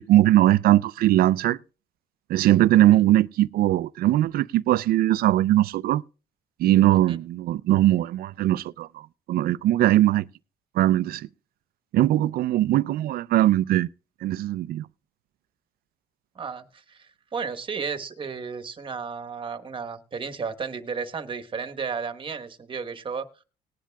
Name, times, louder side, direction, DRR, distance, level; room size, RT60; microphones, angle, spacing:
voice 1, 0.0-1.6 2.3-6.0 6.6-8.9 9.3-10.2 10.8-11.3 11.9-13.9 14.2-14.8, right 14 dB, 65° right, 0.5 m, -20 dB
voice 2, 2.7-3.0 6.9-7.2 16.3-23.3, right 5 dB, 30° right, 1.3 m, -33 dB
19.5 x 10.5 x 2.3 m
cardioid pair, 110°, 17 cm